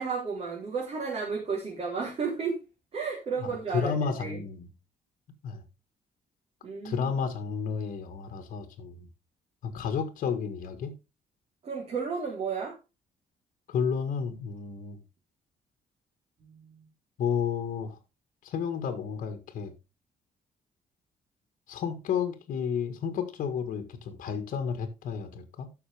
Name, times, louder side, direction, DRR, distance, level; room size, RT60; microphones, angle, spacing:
voice 1, 0.0-2.6 2.9-4.4 6.6-7.1 11.6-12.8 16.4-16.9, right 5 dB, 45° right, 3.5 m, -33 dB
voice 2, 3.7-4.6 5.4-5.6 6.8-9.1 9.6-11.0 13.7-15.0 17.2-18.0 18.4-19.7 21.7-25.7, left 6 dB, 65° left, 1.7 m, -31 dB
12.5 x 6.3 x 3.4 m
cardioid pair, 155°, 15 cm